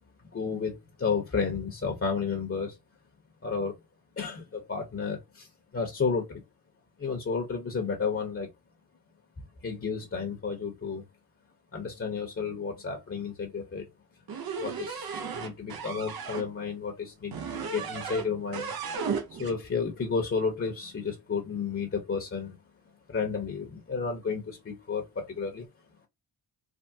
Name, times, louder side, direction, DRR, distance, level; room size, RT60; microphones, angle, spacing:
voice 1, 0.3-2.8 3.4-3.7 4.2-5.5 5.7-6.4 7.0-8.5 9.6-11.0 11.7-13.9 14.6-18.7 19.3-22.5 23.1-25.7, left 5 dB, 35° left, 1.0 m, -32 dB
sound 1, 14.3-16.5 17.3-18.3 18.5-19.6, right 5 dB, 65° right, 0.7 m, -35 dB
3.6 x 2.1 x 2.7 m
cardioid pair, 60°, 39 cm